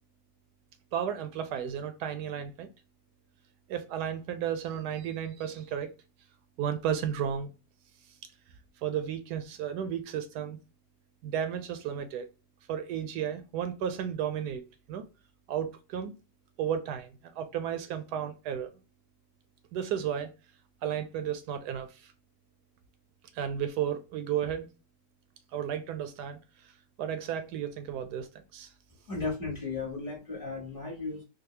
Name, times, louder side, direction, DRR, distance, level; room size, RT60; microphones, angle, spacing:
voice 1, 0.9-2.7 3.7-5.9 6.6-7.5 8.8-10.6 11.2-12.3 12.7-14.6 14.9-15.0 15.5-16.1 16.6-18.7 19.7-20.3 20.8-22.1 23.3-24.7 25.5-26.7 27.0-28.7, right 9 dB, 80° right, 1.1 m, -33 dB
voice 2, 29.1-31.2, left 3 dB, 35° left, 1.4 m, -35 dB
3.9 x 2.3 x 2.7 m
omnidirectional pair, 1.8 m